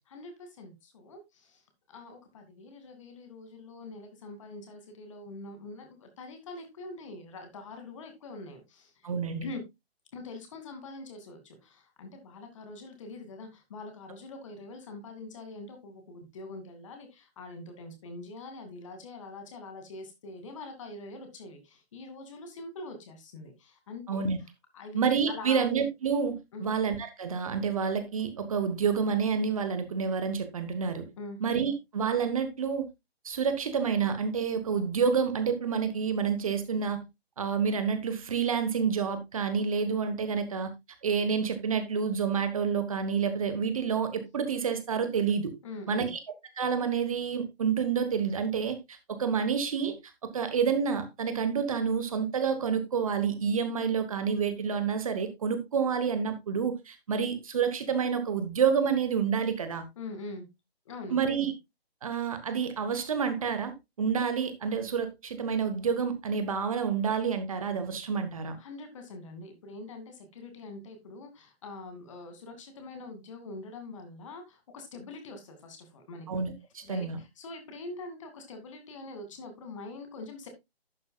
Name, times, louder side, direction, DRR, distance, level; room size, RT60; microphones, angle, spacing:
voice 1, 0.1-1.6 1.9-9.1 9.4-9.6 10.1-24.3 24.7-25.0 25.3-25.6 26.5-26.7 31.2-31.4 45.6-46.1 60.0-60.5 60.9-61.2 68.6-76.3 76.8-80.5, left 2 dB, 30° left, 2.5 m, -44 dB
voice 2, 9.0-9.5 24.1-24.4 24.9-31.1 31.4-32.9 33.2-37.0 37.4-40.7 41.0-45.5 45.9-46.2 46.6-50.0 50.3-59.8 61.1-61.5 62.0-68.6 76.3-77.2, right 6 dB, 35° right, 1.3 m, -28 dB
11.5 x 9.3 x 2.3 m
figure-of-eight pair, 140°, 31 cm